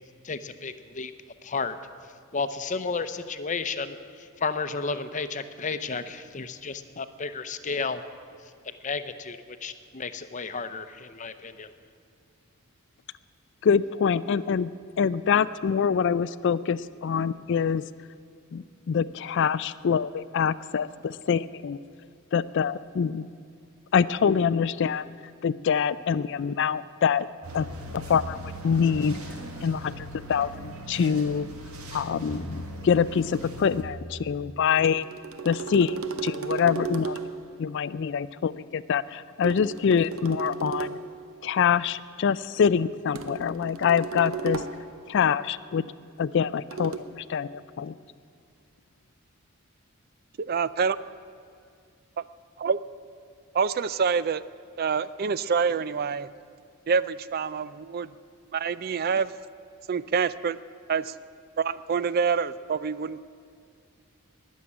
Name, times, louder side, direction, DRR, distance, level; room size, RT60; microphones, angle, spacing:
voice 1, 0.2-1.1 1.4-1.8 2.3-3.9 4.4-8.0 8.8-11.7, left 4 dB, 35° left, 11 dB, 0.7 m, -32 dB
voice 2, 13.6-14.7 15.0-17.8 18.5-21.8 22.3-23.3 23.9-25.1 25.4-27.3 27.5-27.7 27.9-29.2 29.6-31.5 31.9-35.1 35.4-37.2 37.6-41.0 41.4-44.6 45.1-45.8 46.2-47.9, left 7 dB, 55° left, 16 dB, 0.3 m, -25 dB
sound 1, 27.4-33.8, right 1 dB, 90° right, 1.9 m, -39 dB
sound 2, 34.7-37.5 39.4-41.2 43.2-45.0 46.7-47.0, right 5 dB, 70° right, 0.9 m, -34 dB
voice 3, 50.5-51.0 52.6-52.8 53.5-54.4 54.8-56.3 56.9-58.1 58.5-59.3 59.9-60.6 60.9-61.1 61.6-63.2, right 5 dB, 45° right, 16 dB, 0.4 m, -26 dB
19.5 x 7.4 x 9.8 m, 2.3 s
head